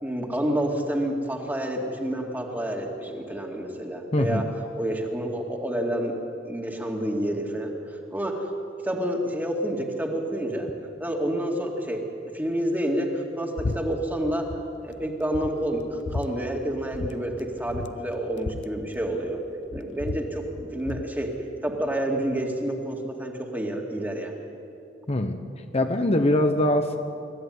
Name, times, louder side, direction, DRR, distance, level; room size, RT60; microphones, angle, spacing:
voice 1, 0.0-4.4 4.8-6.2 6.5-8.5 8.8-10.7 11.0-14.5 14.8-19.4 19.7-21.3 21.6-24.3, right 1 dB, 10° right, 1 dB, 2.2 m, -29 dB
voice 2, 4.1-4.4 25.1-27.0, left 1 dB, 35° left, 6 dB, 1.0 m, -23 dB
sound 1, 13.6-13.8 14.1-14.6 15.0-15.1 15.3-16.3 16.9-17.1 17.4-17.5 17.7-19.4 19.7-21.1, left 3 dB, 80° left, 0.7 m, -33 dB
25.0 x 13.5 x 9.6 m, 2.7 s
head